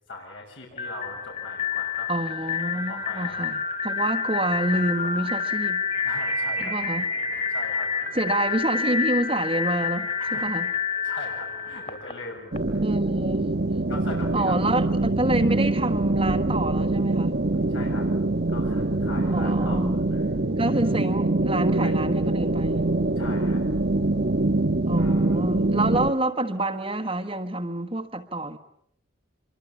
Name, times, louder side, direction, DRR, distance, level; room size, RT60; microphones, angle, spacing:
voice 1, 0.1-2.1 2.9-3.4 4.7-5.3 6.0-6.9 7.3-8.2 10.2-10.4 11.0-12.8 13.9-14.6 17.7-18.1 18.5-19.8 20.1-20.3 21.8-22.2 23.2-23.7 25.0-25.5, left 2 dB, 70° left, 7.0 m, -40 dB
sound 1, 0.7-12.6, left 5 dB, 35° left, 3.4 m, -28 dB
voice 2, 2.1-5.8 6.6-7.0 8.1-10.7 12.8-13.5 14.3-17.4 19.3-20.0 20.6-22.9 24.9-28.6, right 1 dB, 25° right, 1.5 m, -27 dB
sound 2, 12.5-26.1, right 2 dB, 50° right, 1.2 m, -24 dB
26.0 x 24.0 x 8.5 m
head